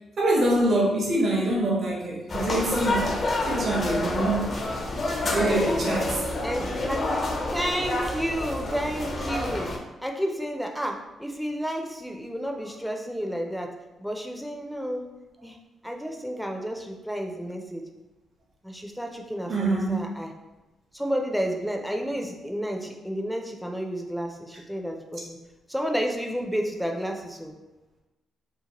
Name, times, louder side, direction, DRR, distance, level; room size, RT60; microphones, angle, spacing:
voice 1, 0.2-3.1 3.5-4.5 5.2-6.2 19.5-20.0, right 1 dB, 60° right, -3 dB, 0.9 m, -24 dB
sound 1, 2.3-9.8, left 2 dB, 55° left, 0.6 m, -28 dB
voice 2, 6.4-7.1 7.5-9.7 10.0-15.1 15.4-15.6 15.8-17.9 18.6-20.3 20.9-25.4 25.7-27.5, equal, ahead, 2 dB, 0.4 m, -31 dB
2.8 x 2.1 x 2.9 m, 1.1 s
supercardioid pair, 65°, 0 cm